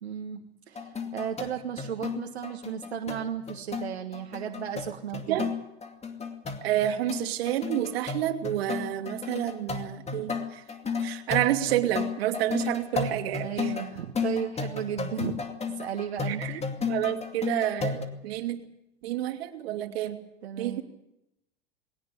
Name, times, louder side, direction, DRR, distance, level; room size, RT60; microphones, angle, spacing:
voice 1, 0.0-5.5 13.4-15.4 15.7-16.6 20.4-20.8, right 9 dB, 90° right, 3 dB, 1.6 m, -34 dB
sound 1, 0.8-18.0, left 5 dB, 20° left, 2.5 m, -33 dB
voice 2, 6.6-10.6 11.0-13.7 16.3-16.6 16.9-18.6 19.0-20.2 20.6-20.8, right 13 dB, 70° right, 5 dB, 2.7 m, -29 dB
21.5 x 18.0 x 8.3 m, 0.84 s
hypercardioid pair, 100°, 31 cm